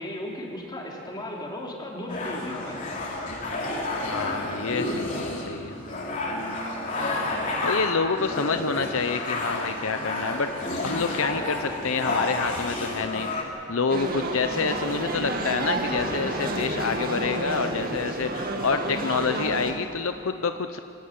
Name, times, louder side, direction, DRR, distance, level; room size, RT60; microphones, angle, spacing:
voice 1, 0.0-2.8, left 1 dB, 20° left, -2 dB, 3.8 m, -35 dB
sound 1, 2.1-13.4, left 2 dB, 35° left, 4.1 m, -30 dB
voice 2, 3.9-5.8 7.6-10.5 10.8-20.8, left 5 dB, 65° left, 8 dB, 0.7 m, -28 dB
sound 2, 13.9-19.7, right 1 dB, 40° right, 2.3 m, -30 dB
25.5 x 16.5 x 9.4 m, 2.8 s
head